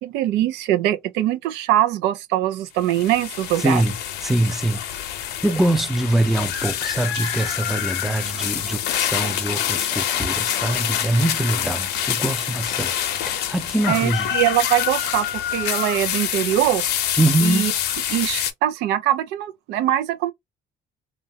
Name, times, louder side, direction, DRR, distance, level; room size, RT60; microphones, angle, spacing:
voice 1, 0.0-3.8 13.9-16.9 17.4-17.7 18.1-20.3, right 13 dB, 90° right, 0.4 m, -22 dB
sound 1, 2.8-18.5, left 10 dB, 75° left, 0.6 m, -26 dB
voice 2, 3.6-3.9 4.2-4.8 5.4-12.9 13.3-14.3 17.2-17.7, right 1 dB, ahead, 0.5 m, -23 dB
2.8 x 2.2 x 2.6 m
cardioid pair, 110°, 17 cm